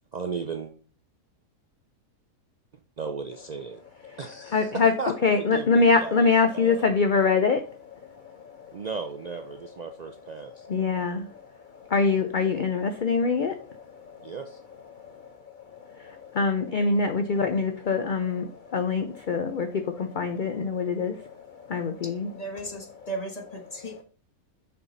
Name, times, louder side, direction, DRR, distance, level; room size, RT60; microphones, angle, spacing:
voice 1, 0.1-0.7 3.0-3.8 4.2-4.6 5.0-5.1 5.4-6.3 6.5-6.8 8.7-10.7 14.2-14.6, right 5 dB, 85° right, 6 dB, 0.3 m, -35 dB
voice 2, 4.0-4.9 5.2-8.9 9.6-9.7 10.1-22.3 22.7-23.1, left 4 dB, 55° left, 7 dB, 0.5 m, -26 dB
voice 3, 22.3-24.0, right 2 dB, 30° left, 2 dB, 1.3 m, -36 dB
6.6 x 5.5 x 4.0 m, 0.40 s
omnidirectional pair, 1.5 m